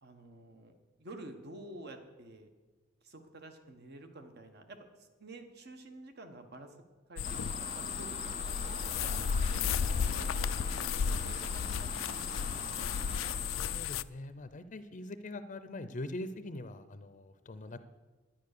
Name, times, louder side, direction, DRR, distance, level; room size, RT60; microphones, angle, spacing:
voice 1, 0.0-2.5 3.0-6.8 7.1-8.2 8.5-10.8 11.1-12.7 17.6-17.8, right 2 dB, 55° right, 7 dB, 1.2 m, -50 dB
sound 1, 7.2-14.0, left 7 dB, 85° left, 0.4 m, -33 dB
sound 2, 7.2-13.8, right 4 dB, 30° right, 0.5 m, -45 dB
voice 2, 13.4-17.8, left 2 dB, 40° left, 11 dB, 0.6 m, -43 dB
10.5 x 10.0 x 6.7 m, 1.3 s
head